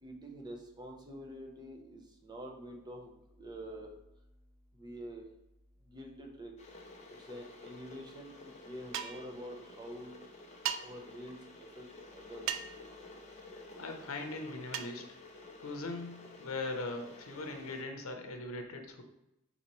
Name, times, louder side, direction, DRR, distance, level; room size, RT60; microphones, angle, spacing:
voice 1, 0.0-3.1 3.4-3.9 4.8-5.2 5.9-6.5 7.1-10.1 10.8-11.4 11.7-11.9 12.1-12.5, equal, 20° right, 1 dB, 0.7 m, -46 dB
Water / Boiling, 6.6-17.8, left 2 dB, 35° left, 0.6 m, -52 dB
sound 1, 8.9-9.3 10.6-10.8 12.5-12.8 14.7-14.9, right 9 dB, 65° right, 0.3 m, -36 dB
voice 2, 13.8-15.1 15.6-19.0, left 2 dB, 80° left, 5 dB, 0.7 m, -40 dB
4.1 x 4.0 x 3.0 m, 0.87 s
head